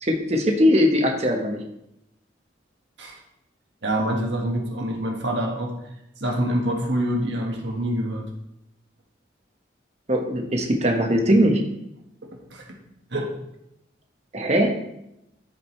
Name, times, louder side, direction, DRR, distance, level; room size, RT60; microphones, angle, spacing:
voice 1, 0.0-1.6 10.1-11.6 14.3-14.8, equal, 35° right, 2 dB, 1.2 m, -20 dB
voice 2, 3.8-5.8 6.2-8.3 12.5-12.6 13.1-13.3, right 1 dB, 70° right, 0 dB, 1.6 m, -26 dB
13.0 x 5.2 x 3.2 m, 0.82 s
head